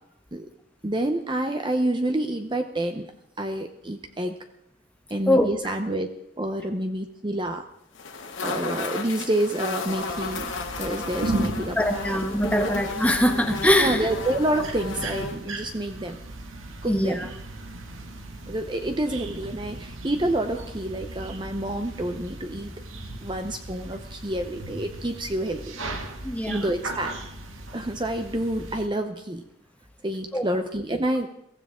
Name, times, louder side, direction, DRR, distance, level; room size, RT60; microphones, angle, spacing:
voice 1, 0.8-3.1 3.4-4.3 5.1-6.1 6.4-7.7 8.4-10.5 10.8-11.8 12.1-12.2 12.7-12.8 13.8-16.2 16.8-17.2 18.5-22.7 23.2-25.8 26.5-27.2 27.7-29.4 30.0-31.3, right 1 dB, 25° right, 6 dB, 0.7 m, -28 dB
sound 1, 8.0-15.4, left 3 dB, 80° left, 2.0 m, -33 dB
sound 2, 10.1-28.9, right 2 dB, 85° right, 2.0 m, -37 dB
voice 2, 11.8-14.1 16.9-17.3 26.2-26.7 30.3-30.4, left 1 dB, 5° left, 4 dB, 1.3 m, -22 dB
23.0 x 15.5 x 3.7 m, 0.78 s
head